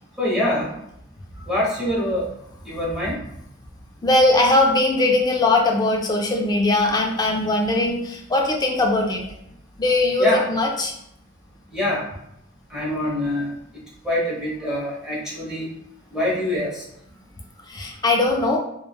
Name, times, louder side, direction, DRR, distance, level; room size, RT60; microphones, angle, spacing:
voice 1, 0.2-0.7 1.5-2.2 2.7-3.2 10.2-10.5 11.7-12.0 12.7-13.5 14.0-15.7 16.1-16.8, left 1 dB, 5° right, -7 dB, 0.9 m, -24 dB
voice 2, 4.0-9.2 9.8-10.9 17.7-18.6, left 2 dB, 20° left, 1 dB, 0.4 m, -20 dB
3.2 x 2.1 x 2.2 m, 0.77 s
head